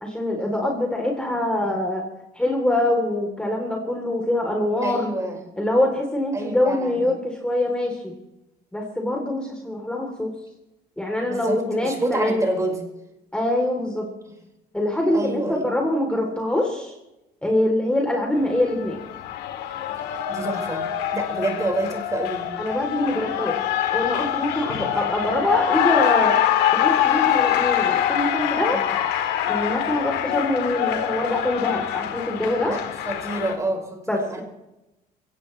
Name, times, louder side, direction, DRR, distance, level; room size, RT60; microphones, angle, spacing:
voice 1, 0.0-2.0 2.3-5.1 5.6-8.1 8.7-10.3 11.0-12.4 13.3-14.1 14.7-16.9 17.4-19.0 22.6-23.6 23.9-26.4 26.7-28.8 29.5-32.7 34.1-34.4, left 1 dB, 5° left, 0 dB, 3.3 m, -24 dB
voice 2, 4.8-5.4 6.3-7.0 11.2-12.8 15.1-15.7 20.3-20.8 21.1-22.5 28.7-28.9 32.7-34.4, right 2 dB, 20° right, 1 dB, 5.1 m, -28 dB
Cheering, 18.4-33.5, left 11 dB, 90° left, 1.9 m, -24 dB
24.5 x 17.5 x 3.3 m, 0.94 s
cardioid pair, 110°, 17 cm